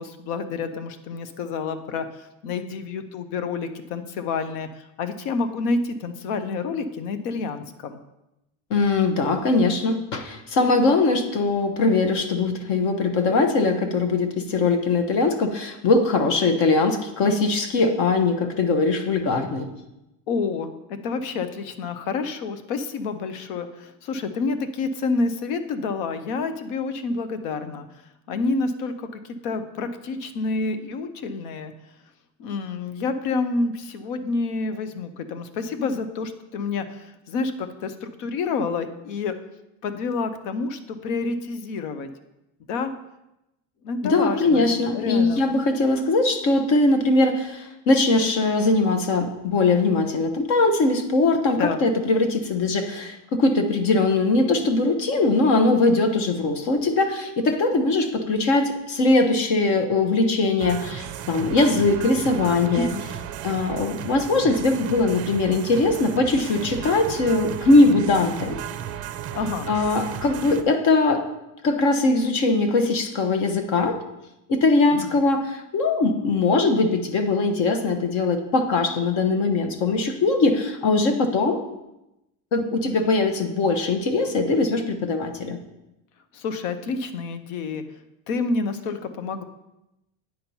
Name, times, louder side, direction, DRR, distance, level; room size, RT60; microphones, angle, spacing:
voice 1, 0.0-8.0 20.3-27.9 28.3-31.7 32.4-39.4 39.8-42.1 42.7-42.9 43.8-45.4 51.6-51.8 62.7-63.0 69.3-69.7 74.9-75.2 86.3-87.8 88.3-89.4, left 4 dB, 80° left, 10 dB, 0.9 m, -28 dB
voice 2, 8.7-19.7 44.0-62.9 63.4-68.6 69.7-71.2 71.6-74.0 74.5-81.6 82.5-85.6, left 3 dB, 45° left, 7 dB, 1.0 m, -21 dB
sound 1, 60.6-70.6, right 10 dB, 40° right, 0.5 m, -35 dB
9.1 x 4.4 x 5.4 m, 0.91 s
cardioid pair, 165°, 40 cm